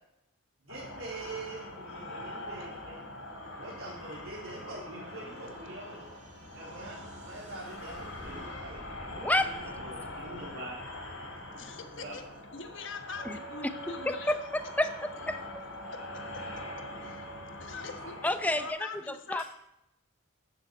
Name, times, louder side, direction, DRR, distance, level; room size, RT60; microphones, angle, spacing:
voice 1, 0.6-3.0 3.6-6.1 6.5-8.8 9.4-10.8 11.1-11.4 12.0-12.2, right 2 dB, 80° right, -5 dB, 3.4 m, -44 dB
sound 1, 0.7-18.7, left 2 dB, 90° left, 4.4 m, -43 dB
sound 2, 2.5-15.2, equal, 35° right, 2.8 m, -53 dB
voice 2, 9.2-9.5 13.2-13.4 14.1-14.4 14.8-14.9 15.3-15.6 18.2-18.8 19.3-19.4, left 1 dB, 10° left, 9 dB, 0.7 m, -28 dB
voice 3, 11.5-12.2 12.5-14.4 14.6-14.9 15.9-16.0 16.3-16.4 17.0-17.3 17.6-18.2 18.5-19.4, left 4 dB, 60° left, 6 dB, 1.3 m, -43 dB
Wind instrument woodwind instrument, 13.1-17.6, right 5 dB, 60° right, 4.3 m, -48 dB
13.0 x 7.2 x 7.8 m, 0.83 s
head